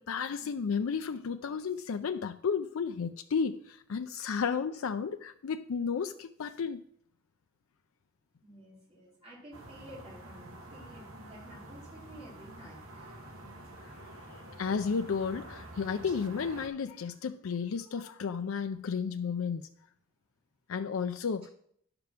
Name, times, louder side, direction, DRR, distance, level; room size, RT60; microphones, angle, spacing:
voice 1, 0.0-6.8 13.8-19.7 20.7-21.5, left 6 dB, 85° left, 0.4 m, -33 dB
voice 2, 8.4-13.2 16.0-16.1, equal, 30° right, 3.4 m, -52 dB
sound 1, 9.5-16.7, right 1 dB, 85° right, 1.4 m, -48 dB
10.5 x 5.2 x 5.9 m
head